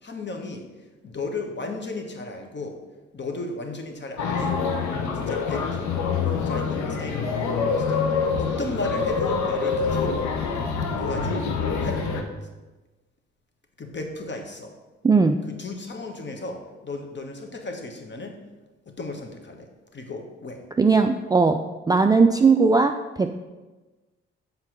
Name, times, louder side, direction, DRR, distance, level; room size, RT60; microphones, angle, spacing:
voice 1, 0.0-0.6 1.0-2.8 3.1-4.6 5.1-5.9 6.3-7.3 7.8-10.2 11.0-11.5 11.8-12.1 13.8-14.7 15.4-18.4 18.9-19.7 19.9-20.6, left 2 dB, 35° left, 4 dB, 1.4 m, -34 dB
sound 1, 4.2-12.2, left 5 dB, 60° left, 1.0 m, -25 dB
voice 2, 15.0-15.4 20.8-21.6 21.9-23.3, right 4 dB, 10° right, 5 dB, 0.4 m, -18 dB
7.5 x 3.9 x 6.0 m, 1.2 s
figure-of-eight pair, 40°, 33 cm